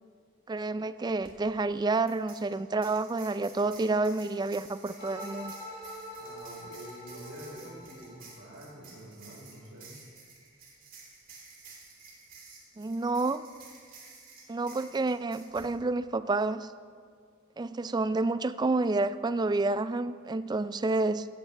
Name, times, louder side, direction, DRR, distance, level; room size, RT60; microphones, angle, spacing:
voice 1, 0.5-5.5 12.8-13.4 14.5-16.7 17.6-21.3, right 3 dB, 20° right, 14 dB, 0.3 m, -29 dB
sound 1, 1.2-1.3 2.1-15.7, right 4 dB, 45° right, 3.1 m, -52 dB
sound 2, 5.0-9.0, equal, 45° left, 2.4 m, -45 dB
voice 2, 6.1-9.9, equal, 70° right, -3 dB, 4.4 m, -47 dB
15.5 x 15.5 x 3.4 m, 2.1 s
head